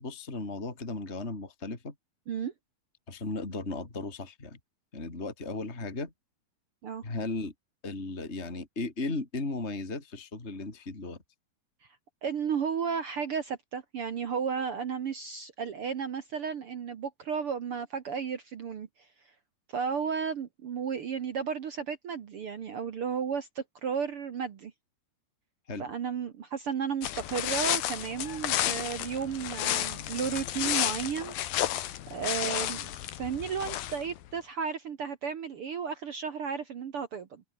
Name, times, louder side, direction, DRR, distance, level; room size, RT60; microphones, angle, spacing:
voice 1, 0.0-1.9 3.1-4.6 4.9-6.1 7.0-7.5 7.8-11.2 25.7-25.9, left 3 dB, 20° left, 3.7 m, -36 dB
voice 2, 12.2-18.9 19.7-24.7 25.8-31.3 32.1-37.4, right 6 dB, 55° right, 1.6 m, -33 dB
sound 1, 27.0-34.2, left 13 dB, 80° left, 3.2 m, -32 dB
omnidirectional pair, 4.1 m